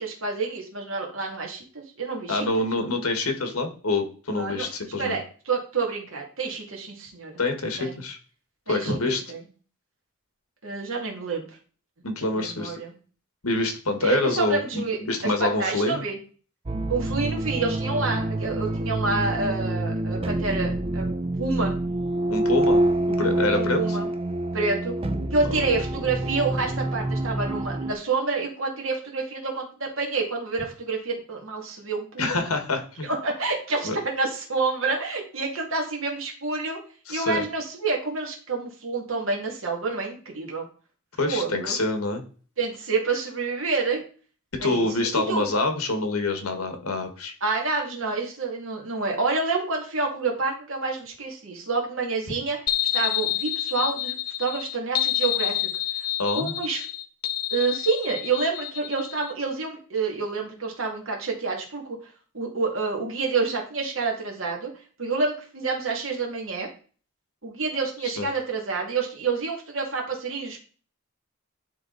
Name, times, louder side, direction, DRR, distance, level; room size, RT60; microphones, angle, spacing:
voice 1, 0.0-2.7 4.3-4.7 5.0-7.4 7.8-8.0 8.7-9.4 10.6-11.5 12.2-12.9 14.0-16.2 16.9-21.8 23.5-24.1 24.5-24.9 25.3-32.3 33.0-36.8 37.1-40.7 41.2-41.8 42.6-44.0 44.6-44.9 45.3-45.5 47.4-52.6 52.9-55.7 56.3-56.9 57.5-61.8 62.3-64.7 65.0-66.7 67.4-70.6, right 4 dB, 70° right, 0 dB, 2.3 m, -28 dB
voice 2, 2.3-5.2 7.4-8.2 8.7-9.2 12.0-12.8 13.4-16.0 22.3-22.8 23.2-24.0 25.5-25.6 32.2-33.1 33.8-33.9 37.1-37.4 41.2-42.2 44.6-47.3 56.2-56.6 68.2-68.3, left 2 dB, 90° left, 6 dB, 1.5 m, -26 dB
sound 1, 16.7-27.9, right 1 dB, 25° right, 0.5 m, -27 dB
sound 2, 52.7-59.3, left 13 dB, 45° left, 0.5 m, -28 dB
11.0 x 3.7 x 4.0 m, 0.40 s
head